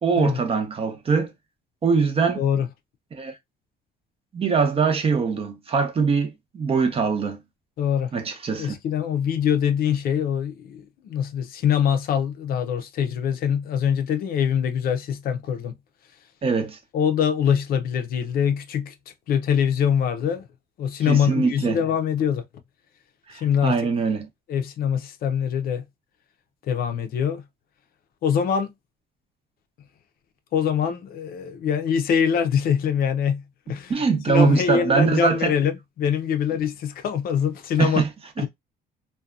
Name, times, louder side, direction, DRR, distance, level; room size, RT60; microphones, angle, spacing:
voice 1, 0.0-1.3 1.8-2.4 3.1-3.3 4.3-7.4 8.1-8.8 16.4-16.8 21.0-21.8 23.3-24.3 33.9-35.5 37.8-38.1 38.4-38.5, right 5 dB, 35° right, 0.7 m, -22 dB
voice 2, 2.4-2.7 7.8-8.1 8.6-15.7 16.9-18.9 19.3-20.5 20.8-22.4 23.3-23.8 24.5-25.8 26.7-27.4 28.2-28.7 30.5-33.4 33.7-33.9 34.3-38.0 38.4-38.5, left 8 dB, 60° left, 0.5 m, -23 dB
2.6 x 2.2 x 2.3 m
cardioid pair, 110°, 17 cm